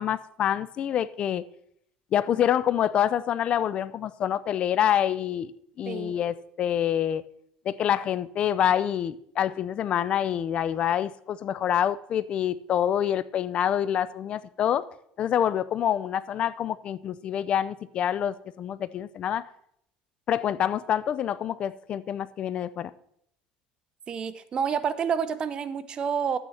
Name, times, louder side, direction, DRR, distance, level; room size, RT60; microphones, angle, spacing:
voice 1, 0.0-1.4 2.1-5.5 5.8-7.2 7.7-14.8 15.2-19.4 20.3-22.9, left 10 dB, 45° left, 18 dB, 0.5 m, -26 dB
voice 2, 24.1-26.4, right 7 dB, 35° right, 13 dB, 0.8 m, -28 dB
12.5 x 9.0 x 4.3 m, 0.73 s
supercardioid pair, 115°, 3 cm